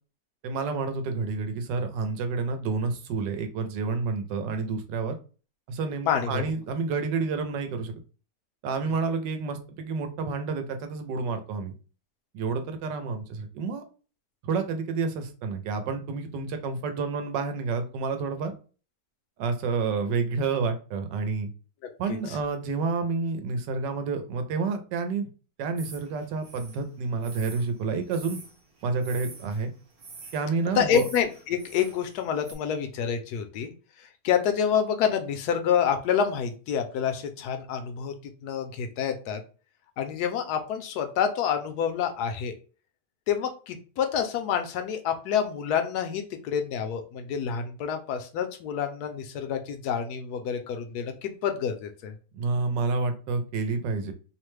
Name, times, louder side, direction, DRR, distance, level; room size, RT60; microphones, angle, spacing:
voice 1, 0.4-5.2 5.7-7.9 8.6-11.7 12.3-13.8 14.4-18.5 19.4-21.5 22.0-25.3 25.6-28.4 28.8-29.7 30.3-31.0 52.3-54.1, right 4 dB, 85° right, 7 dB, 1.2 m, -29 dB
voice 2, 6.1-6.4 21.8-21.9 22.3-22.4 30.7-33.7 34.2-38.1 38.4-39.4 40.0-42.5 43.3-52.1, left 8 dB, 75° left, 7 dB, 1.0 m, -28 dB
sound 1, 25.8-32.5, right 4 dB, 50° right, 1.0 m, -47 dB
3.0 x 2.1 x 3.1 m, 0.36 s
omnidirectional pair, 1.8 m